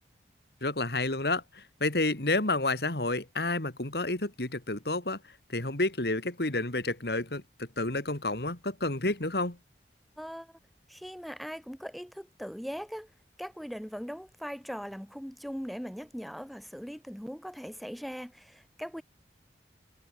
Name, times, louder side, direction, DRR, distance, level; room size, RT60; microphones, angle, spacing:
voice 1, 0.6-9.6, left 2 dB, 60° left, 2.5 m, -30 dB
voice 2, 10.2-10.6 10.9-13.1 13.4-19.0, equal, ahead, 5.6 m, -40 dB
head